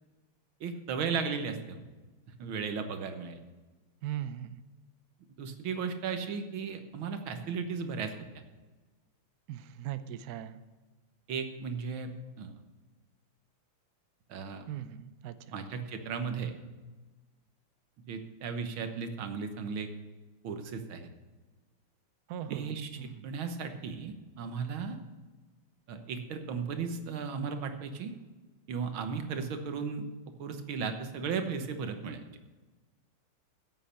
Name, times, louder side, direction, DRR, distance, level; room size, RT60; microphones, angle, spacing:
voice 1, 0.6-1.8 2.4-3.4 5.4-8.1 11.3-12.1 12.4-12.5 14.3-14.7 15.5-16.5 18.1-19.9 20.4-21.1 22.5-25.0 25.9-28.1 28.7-30.1 30.4-32.2, right 5 dB, 70° right, 7 dB, 1.8 m, -35 dB
voice 2, 4.0-4.6 9.5-10.6 14.7-15.3 22.3-23.2, right 11 dB, 85° right, 12 dB, 0.8 m, -39 dB
10.0 x 8.1 x 6.5 m, 1.2 s
omnidirectional pair, 2.4 m